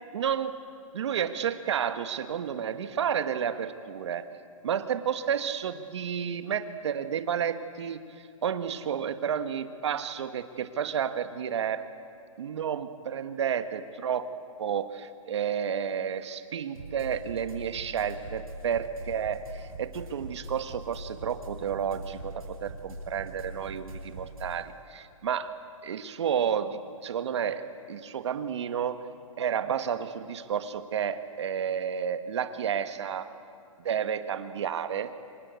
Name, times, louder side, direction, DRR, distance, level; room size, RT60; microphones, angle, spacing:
voice 1, 0.1-0.6 0.9-4.3 4.6-8.0 8.4-11.9 12.4-14.3 14.6-25.6 25.8-29.0 29.4-33.3 33.8-35.1, right 8 dB, 55° right, 10 dB, 1.5 m, -31 dB
sound 1, 16.7-24.5, right 1 dB, 90° right, 7.4 m, -42 dB
26.5 x 24.5 x 8.3 m, 2.3 s
hypercardioid pair, 165°, 18 cm